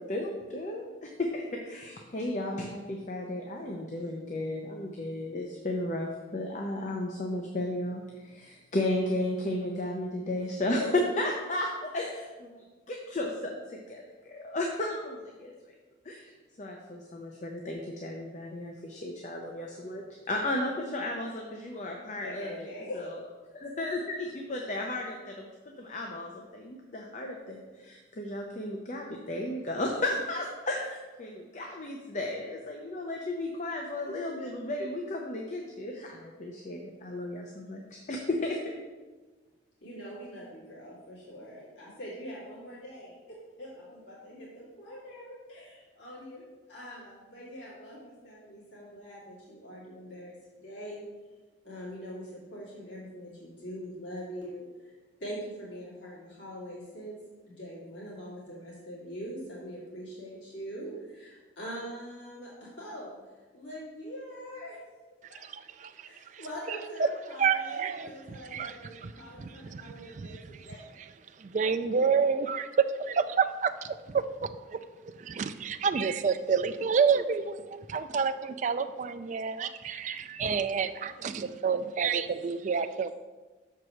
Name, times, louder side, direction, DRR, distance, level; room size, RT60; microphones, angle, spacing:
voice 1, 0.0-15.7 16.0-16.3 16.6-23.2 23.5-38.8, left 1 dB, 40° left, 1 dB, 0.7 m, -34 dB
voice 2, 22.2-23.0 39.8-51.0 51.6-54.7 55.2-57.2 57.5-63.2 63.5-64.8 65.3-65.4 66.0-70.4 70.6-71.0, equal, 70° left, -7 dB, 2.3 m, -43 dB
voice 3, 65.4-67.1 67.4-69.1 69.4-70.7 71.0-71.1 71.4-74.8 75.2-83.1, right 6 dB, 40° right, 10 dB, 0.3 m, -29 dB
5.9 x 4.6 x 6.5 m, 1.3 s
head